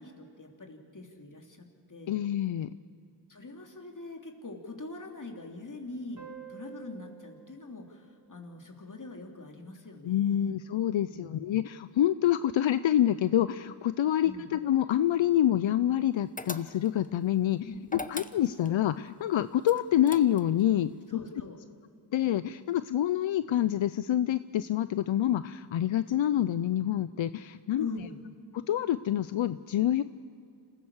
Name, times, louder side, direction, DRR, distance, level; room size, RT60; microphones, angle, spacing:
voice 1, 0.0-2.2 3.3-10.5 11.1-11.4 14.2-14.4 17.6-18.0 21.1-21.6 27.8-28.2, left 3 dB, 40° left, 2 dB, 3.0 m, -43 dB
voice 2, 2.1-2.8 10.0-17.7 18.1-21.2 22.1-27.9 28.5-30.0, left 11 dB, 85° left, 14 dB, 0.6 m, -27 dB
sound 1, 6.2-9.3, right 9 dB, 40° right, 2.2 m, -51 dB
sound 2, 16.4-17.1 17.9-18.8 19.6-20.6, left 3 dB, 20° left, 0.9 m, -40 dB
27.0 x 15.5 x 7.2 m, 2.4 s
cardioid pair, 55°, 45 cm